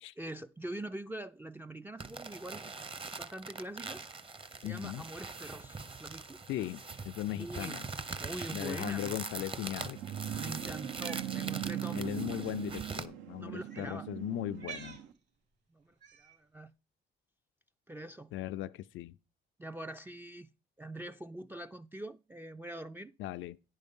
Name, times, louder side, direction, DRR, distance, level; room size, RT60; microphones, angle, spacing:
voice 1, 0.2-2.6 3.1-4.0 4.6-6.4 7.3-7.8 8.2-9.2 10.4-12.4 13.4-14.1 15.7-16.7 17.9-18.3 19.6-20.5 20.8-23.1, right 1 dB, 10° right, 0.3 m, -44 dB
sound 1, 2.0-13.1, right 4 dB, 25° right, 0.8 m, -43 dB
voice 2, 4.6-5.0 6.5-7.9 8.5-10.0 11.9-15.0 18.3-19.2 23.2-23.6, left 13 dB, 75° left, 0.4 m, -38 dB
sound 2, 9.5-15.1, right 11 dB, 90° right, 0.9 m, -40 dB
Cat, 10.8-11.3 12.4-12.5 13.6-14.0 14.5-15.0 16.0-16.4, right 7 dB, 65° right, 3.1 m, -48 dB
10.0 x 5.3 x 5.4 m
cardioid pair, 90°, 20 cm